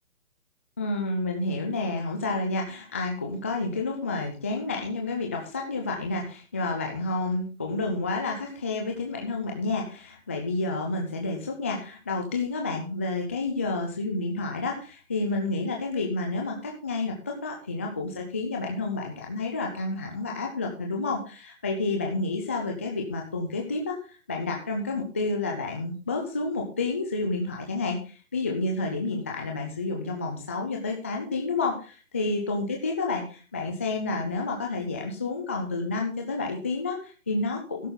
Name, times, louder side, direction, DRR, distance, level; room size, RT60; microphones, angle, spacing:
voice 1, 0.8-37.9, left 3 dB, 10° left, 1 dB, 0.5 m, -30 dB
13.0 x 11.5 x 3.8 m, 0.35 s
hypercardioid pair, 150°, 41 cm